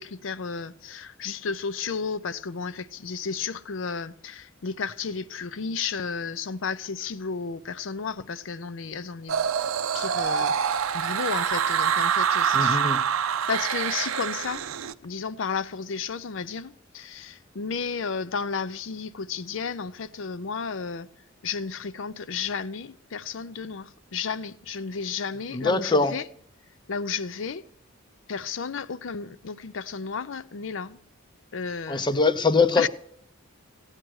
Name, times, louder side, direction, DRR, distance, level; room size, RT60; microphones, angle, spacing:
voice 1, 0.0-9.5 9.9-12.8 13.2-14.7 15.0-21.1 21.4-26.2 26.9-27.6 28.3-31.0 31.5-32.1 32.8-32.9, left 5 dB, 65° left, 0.5 m, -33 dB
sound 1, 9.3-14.9, right 8 dB, 90° right, 0.5 m, -25 dB
voice 2, 12.5-13.0 25.5-26.1 31.9-32.9, left 3 dB, 20° left, 0.6 m, -22 dB
15.5 x 9.0 x 6.3 m
head